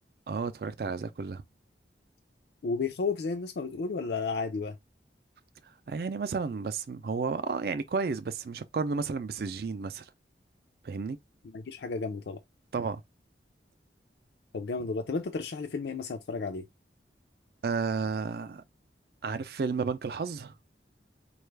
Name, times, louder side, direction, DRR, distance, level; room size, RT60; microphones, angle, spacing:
voice 1, 0.3-1.4 5.6-10.1 10.8-11.2 12.7-13.0 17.6-18.6 19.2-20.5, right 4 dB, 60° right, 0.4 m, -32 dB
voice 2, 2.6-4.8 11.5-12.4 14.5-16.6, left 4 dB, 70° left, 0.4 m, -32 dB
4.5 x 2.3 x 3.1 m
head